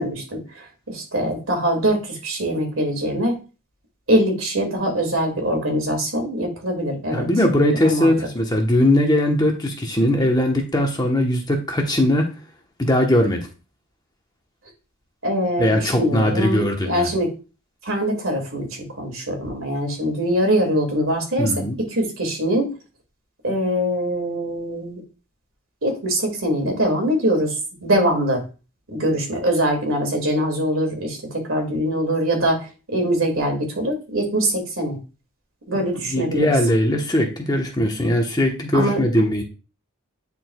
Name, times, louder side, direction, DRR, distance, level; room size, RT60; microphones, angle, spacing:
voice 1, 0.0-3.4 4.1-7.3 7.8-8.1 15.2-17.3 17.8-21.5 21.9-22.7 23.4-25.0 25.8-28.4 28.9-35.0 35.7-36.5 38.7-39.0, equal, 75° right, 2 dB, 2.3 m, -23 dB
voice 2, 7.1-12.3 12.8-13.5 15.6-17.1 21.4-21.8 36.1-39.4, left 1 dB, 20° left, 2 dB, 1.1 m, -20 dB
9.9 x 4.5 x 2.3 m, 0.32 s
head